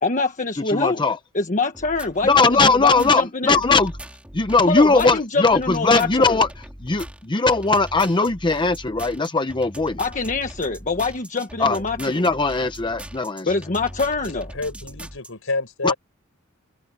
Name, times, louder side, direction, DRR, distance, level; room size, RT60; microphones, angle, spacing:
voice 1, 0.0-1.0 1.3-3.6 4.7-6.4 10.0-12.3 13.5-14.5, left 3 dB, 40° left, 1.4 m, -24 dB
voice 2, 0.7-1.2 2.2-3.9 4.3-6.5 6.8-10.0 11.6-13.5 15.8-15.9, left 3 dB, 20° left, 0.7 m, -19 dB
sound 1, 1.7-15.3, equal, 5° right, 2.8 m, -40 dB
voice 3, 14.2-16.0, left 3 dB, 70° left, 7.0 m, -28 dB
head